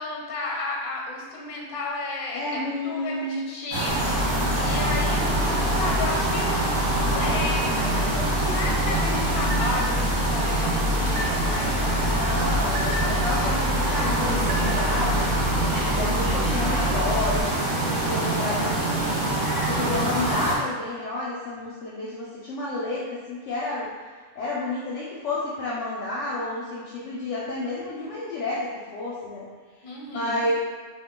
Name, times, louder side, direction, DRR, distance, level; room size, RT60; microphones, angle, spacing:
voice 1, 0.0-6.5 7.1-7.9 8.3-12.2 19.7-20.4 29.8-30.5, left 2 dB, 90° left, -1 dB, 1.1 m, -33 dB
voice 2, 2.3-3.4 12.0-23.9 24.4-29.5 30.1-30.5, left 2 dB, 65° left, -6 dB, 0.8 m, -30 dB
sound 1, 3.7-20.6, right 2 dB, 50° right, 1.1 m, -25 dB
sound 2, 3.9-17.4, left 1 dB, 65° right, 0.7 m, -29 dB
sound 3, 9.4-9.9 10.4-11.7 12.0-13.4 13.8-15.1 15.5-16.0, right 1 dB, 85° right, 1.1 m, -37 dB
3.0 x 2.4 x 3.6 m, 1.5 s
omnidirectional pair, 1.6 m